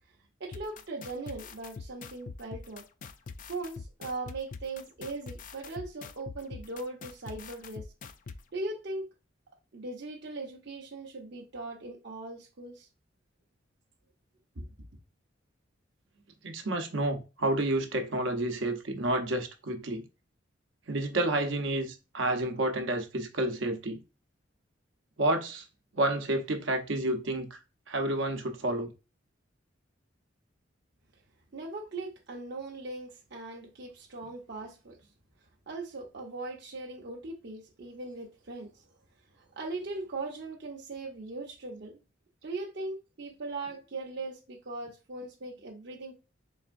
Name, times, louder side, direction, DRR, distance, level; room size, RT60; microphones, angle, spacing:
voice 1, 0.4-2.8 3.5-7.8 8.5-9.1 9.7-12.9 14.6-14.7 31.5-35.0 35.7-38.8 39.4-42.0 42.4-46.1, right 2 dB, 60° right, 0.8 m, -39 dB
sound 1, 0.5-8.4, left 4 dB, 45° left, 0.4 m, -43 dB
voice 2, 16.4-20.0 20.9-24.0 25.2-25.7 25.9-27.6 27.9-28.9, right 1 dB, 85° right, 0.9 m, -30 dB
4.1 x 3.4 x 2.5 m
head